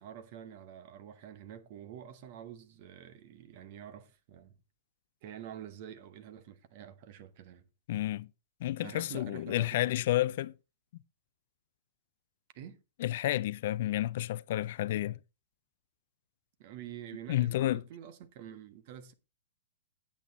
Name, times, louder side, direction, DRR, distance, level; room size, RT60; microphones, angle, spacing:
voice 1, 0.0-4.5 5.2-7.7 8.8-10.0 12.5-12.8 16.6-19.1, right 10 dB, 45° right, 1.4 m, -47 dB
voice 2, 7.9-8.3 8.6-10.5 13.0-15.2 17.3-17.8, left 14 dB, 55° left, 0.4 m, -30 dB
9.1 x 8.5 x 4.2 m
figure-of-eight pair, 110°, 0 cm